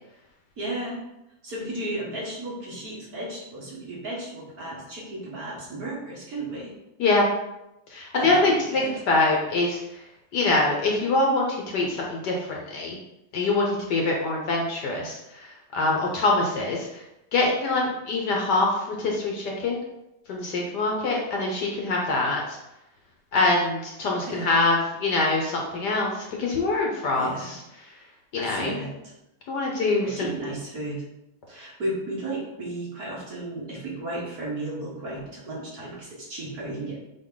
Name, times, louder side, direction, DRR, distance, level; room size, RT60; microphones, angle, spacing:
voice 1, 0.6-1.0 1.4-6.7 8.1-8.9 24.3-24.4 27.2-27.5 28.4-29.1 30.0-31.1 31.5-37.0, right 1 dB, 50° right, -5 dB, 2.0 m, -34 dB
voice 2, 7.9-10.0 10.3-13.0 13.3-17.0 17.3-19.8 20.3-22.6 23.3-27.6 28.3-28.8 29.5-30.3, left 2 dB, 60° left, -1 dB, 1.4 m, -24 dB
7.8 x 3.1 x 3.9 m, 0.90 s
omnidirectional pair, 2.3 m